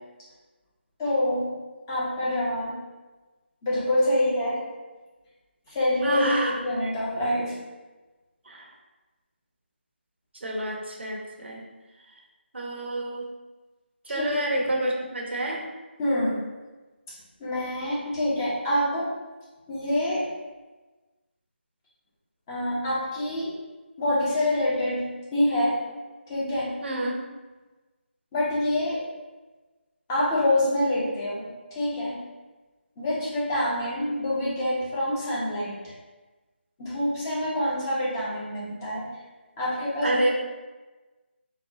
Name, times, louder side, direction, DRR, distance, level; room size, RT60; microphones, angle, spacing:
voice 1, 1.0-1.5 1.9-2.8 3.6-4.6 5.7-7.5 14.1-14.3 14.6-14.7 16.0-16.4 17.1-19.1 19.7-20.2 22.5-23.5 24.0-25.0 25.3-25.8 26.3-26.7 28.3-29.0 30.1-31.5 31.7-32.2 33.0-35.9 36.8-39.1 39.6-40.3, left 1 dB, 20° left, -7 dB, 0.8 m, -26 dB
voice 2, 6.0-6.5 8.5-8.7 10.4-11.6 12.5-13.3 14.1-15.6 26.8-27.2 40.0-40.3, right 1 dB, 70° right, 0 dB, 0.7 m, -28 dB
4.0 x 2.2 x 2.8 m, 1.2 s
figure-of-eight pair, 165°, 6 cm